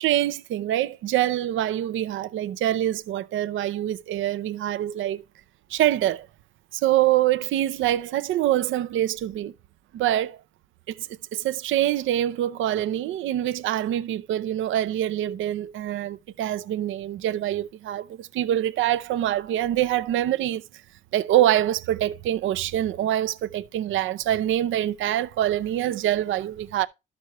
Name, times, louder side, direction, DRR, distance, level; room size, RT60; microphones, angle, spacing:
voice 1, 0.0-5.2 5.7-6.3 6.7-9.5 9.9-10.4 10.9-20.6 21.1-26.9, right 12 dB, 80° right, 0.6 m, -25 dB
12.5 x 6.2 x 3.0 m
cardioid pair, 90°, 20 cm